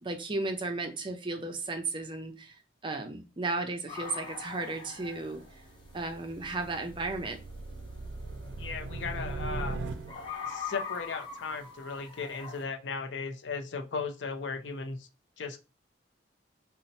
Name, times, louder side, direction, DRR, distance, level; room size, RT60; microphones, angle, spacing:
voice 1, 0.0-5.6 5.9-7.4, right 3 dB, 30° right, 5 dB, 0.5 m, -35 dB
sound 1, 3.9-12.6, left 5 dB, 25° left, 1.1 m, -44 dB
sound 2, 5.3-10.5, right 3 dB, 90° right, 0.4 m, -39 dB
voice 2, 8.6-9.8 10.5-15.1 15.4-15.6, left 5 dB, 75° left, 7 dB, 0.5 m, -36 dB
2.7 x 2.1 x 4.0 m, 0.30 s
head